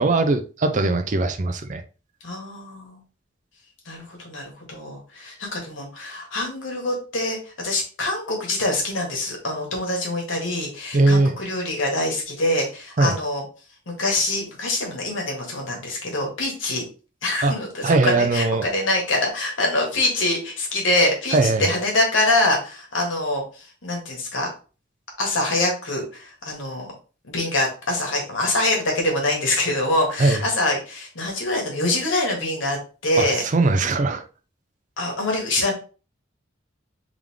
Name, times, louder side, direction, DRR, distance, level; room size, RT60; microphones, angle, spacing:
voice 1, 0.0-1.8 10.9-11.3 13.0-13.2 17.4-17.6 17.8-18.6 21.3-21.7 30.2-30.4 33.2-34.2, right 2 dB, 40° right, 0.5 m, -20 dB
voice 2, 2.2-3.0 3.8-13.4 13.9-16.8 17.2-24.5 25.2-26.9 27.2-33.4 35.0-35.7, left 2 dB, 85° left, 1.7 m, -24 dB
3.6 x 3.2 x 3.6 m
head